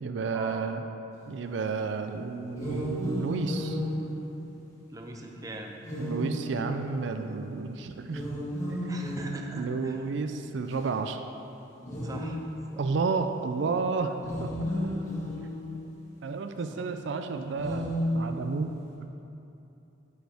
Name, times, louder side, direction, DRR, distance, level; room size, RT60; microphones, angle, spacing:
voice 1, 0.0-0.8 1.3-3.8 6.0-8.4 8.8-8.9 9.5-11.2 12.8-14.9 16.2-18.8, right 4 dB, 70° right, 7 dB, 0.4 m, -31 dB
sound 1, 2.5-4.9 5.8-7.1 8.0-9.9 10.7-10.8 11.8-12.8 14.1-15.9 17.5-18.7, equal, 15° left, 1.3 m, -33 dB
voice 2, 4.9-5.7 8.9-10.0 12.0-12.4 12.7-12.9 16.7-16.8, right 1 dB, 20° right, 2 dB, 0.5 m, -41 dB
9.1 x 6.5 x 3.5 m, 2.9 s
head